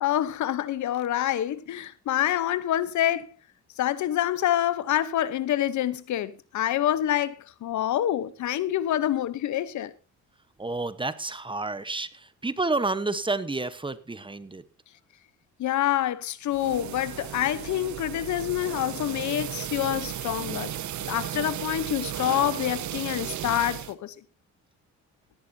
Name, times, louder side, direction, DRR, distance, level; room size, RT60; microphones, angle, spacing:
voice 1, 0.0-3.3 3.8-9.9 15.6-20.7 21.1-24.1, left 12 dB, 70° left, 1.0 m, -27 dB
voice 2, 10.6-12.1 12.4-14.6, right 3 dB, 15° right, 1.1 m, -29 dB
sound 1, 16.5-23.9, right 11 dB, 70° right, 1.2 m, -35 dB
17.0 x 13.5 x 2.8 m
cardioid pair, 90°, 30 cm